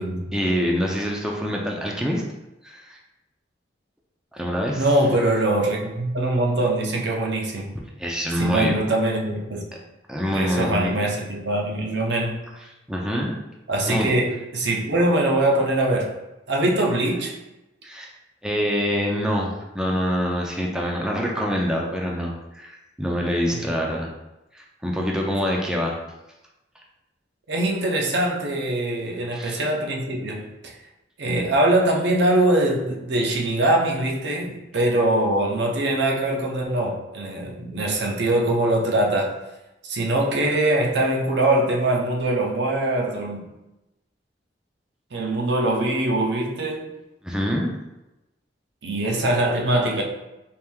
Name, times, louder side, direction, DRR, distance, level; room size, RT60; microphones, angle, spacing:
voice 1, 0.3-2.2 2.6-3.0 4.3-4.8 8.0-8.8 10.1-10.9 12.9-13.3 13.9-14.1 17.8-18.1 18.4-24.1 24.5-26.0 29.3-29.6 47.2-47.7, equal, 5° right, -1 dB, 0.5 m, -25 dB
voice 2, 4.7-7.8 8.4-9.6 10.3-12.4 13.7-16.2 16.5-17.3 23.5-23.7 27.5-30.8 31.2-39.3 39.8-43.4 45.1-46.9 48.8-50.0, right 1 dB, 70° right, 0 dB, 0.7 m, -22 dB
4.4 x 2.6 x 3.6 m, 0.98 s
head